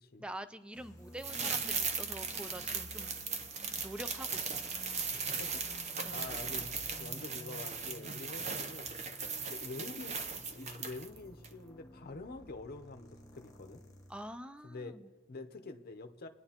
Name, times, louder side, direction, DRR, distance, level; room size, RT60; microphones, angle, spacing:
voice 1, 0.2-3.2 3.7-4.7 6.0-6.2 14.1-15.1, right 1 dB, 5° right, 12 dB, 0.3 m, -46 dB
sound 1, 0.7-14.4, left 1 dB, 15° left, 1.1 m, -54 dB
sound 2, 1.2-11.2 11.4-11.5, right 5 dB, 35° right, 0.7 m, -38 dB
voice 2, 5.1-5.6 6.1-8.9 9.5-13.8 14.6-14.9 15.3-16.3, left 3 dB, 45° left, 7 dB, 0.7 m, -46 dB
24.5 x 9.8 x 2.9 m, 1.5 s
head